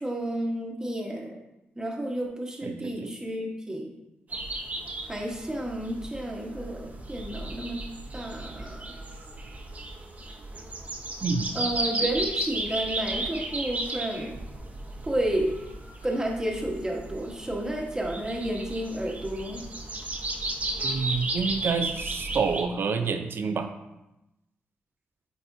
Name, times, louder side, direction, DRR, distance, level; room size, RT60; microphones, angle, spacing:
voice 1, 0.0-1.4 1.8-3.9 5.1-7.8 8.1-8.8 11.5-14.3 15.1-15.5 16.0-19.6, right 1 dB, 15° right, -1 dB, 1.4 m, -31 dB
voice 2, 2.6-3.1 11.2-11.5 20.8-23.7, right 5 dB, 60° right, 7 dB, 0.7 m, -28 dB
sound 1, 4.3-22.6, right 2 dB, 40° right, 1.1 m, -34 dB
9.1 x 4.1 x 2.8 m, 0.93 s
cardioid pair, 70°, 4 cm